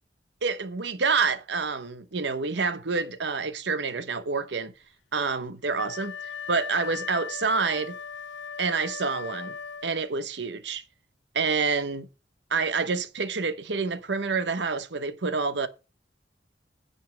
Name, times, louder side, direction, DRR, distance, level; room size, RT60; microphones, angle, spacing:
voice 1, 0.4-4.7 5.1-6.1 6.5-8.0 8.6-9.6 9.8-10.8 11.3-12.1 12.5-15.7, right 4 dB, 70° right, 0.9 m, -28 dB
Wind instrument woodwind instrument, 5.7-10.2, left 6 dB, 85° left, 0.5 m, -38 dB
9.1 x 5.5 x 7.2 m
head